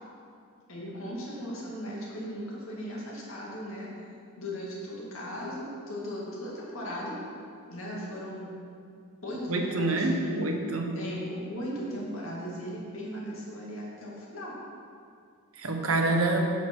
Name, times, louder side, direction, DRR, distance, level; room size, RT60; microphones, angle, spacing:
voice 1, 0.7-3.9 4.4-7.2 7.7-8.5 9.2-10.4 10.9-14.5, equal, 70° left, -5 dB, 2.2 m, -37 dB
voice 2, 9.5-11.0 15.6-16.5, right 2 dB, 80° right, 2 dB, 1.1 m, -27 dB
9.9 x 6.0 x 4.6 m, 2.3 s
head